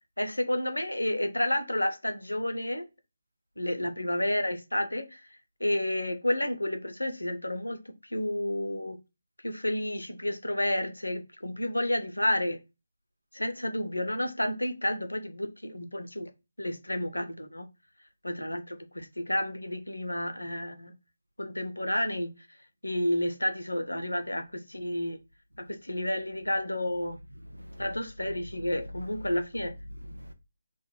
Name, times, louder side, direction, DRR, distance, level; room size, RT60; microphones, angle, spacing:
voice 1, 0.2-2.9 3.6-5.2 5.6-9.0 9.4-12.6 13.3-16.3 16.6-17.7 18.2-20.9 21.4-22.3 22.8-25.2 25.6-27.2 27.8-29.7, left 1 dB, 85° left, 0.5 m, -30 dB
voice 2, 27.4-28.0 28.3-28.4 28.6-29.4 29.9-30.3, equal, 90° right, 0.5 m, -43 dB
2.2 x 2.1 x 3.0 m
figure-of-eight pair, 150°, 0 cm